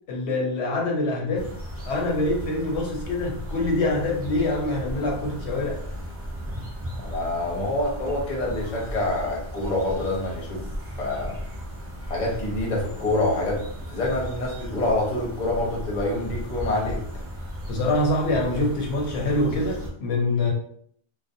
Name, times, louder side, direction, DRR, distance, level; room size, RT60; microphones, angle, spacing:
voice 1, 0.1-1.5 1.9-5.8 17.7-20.5, left 2 dB, 75° left, -1 dB, 0.8 m, -25 dB
sound 1, 1.4-19.9, equal, 20° right, 0.4 m, -36 dB
voice 2, 7.0-10.6 11.0-11.3 12.1-13.6 13.9-17.0, left 2 dB, 45° left, -2 dB, 0.7 m, -26 dB
2.4 x 2.0 x 2.5 m, 0.64 s
omnidirectional pair, 1.2 m